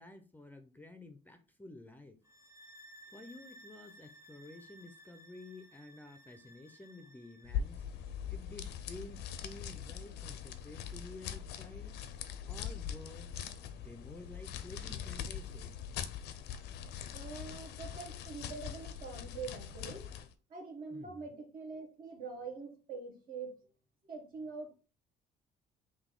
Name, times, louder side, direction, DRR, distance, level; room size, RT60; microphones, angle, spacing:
voice 1, 0.0-2.2 3.1-7.8 8.3-11.9 12.5-13.3 13.8-15.9 20.9-21.2, left 2 dB, 10° left, 0.5 m, -51 dB
sound 1, 2.2-7.6, right 1 dB, 15° right, 0.8 m, -57 dB
sound 2, 7.4-20.3, left 9 dB, 85° left, 0.5 m, -42 dB
voice 2, 17.1-20.1 20.5-23.5 24.1-24.7, right 4 dB, 55° right, 1.2 m, -44 dB
3.9 x 2.6 x 3.7 m
cardioid pair, 110°, 17 cm